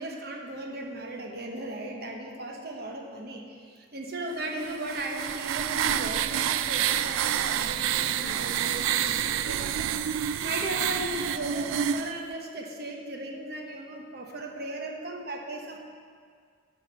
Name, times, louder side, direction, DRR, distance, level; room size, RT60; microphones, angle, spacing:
voice 1, 0.0-9.9 10.4-15.8, right 1 dB, 50° right, 1 dB, 1.0 m, -36 dB
sound 1, 4.6-12.1, right 10 dB, 85° right, 0.3 m, -28 dB
9.8 x 5.2 x 6.1 m, 2.1 s
head